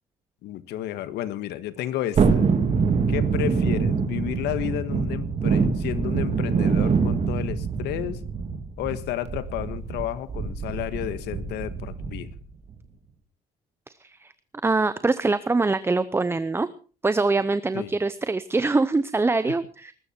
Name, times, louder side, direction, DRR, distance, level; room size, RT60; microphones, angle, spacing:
voice 1, 0.4-2.4 3.1-8.2 8.8-12.3 17.7-17.9, left 12 dB, 80° left, 13 dB, 1.6 m, -31 dB
Thunderstorm, 2.2-12.4 12.7-12.8, right 5 dB, 40° right, 3.0 m, -25 dB
voice 2, 13.9-14.3 14.6-16.7 17.0-19.9, right 3 dB, 15° right, 14 dB, 0.7 m, -24 dB
21.0 x 13.0 x 4.5 m, 0.39 s
cardioid pair, 110°, 17 cm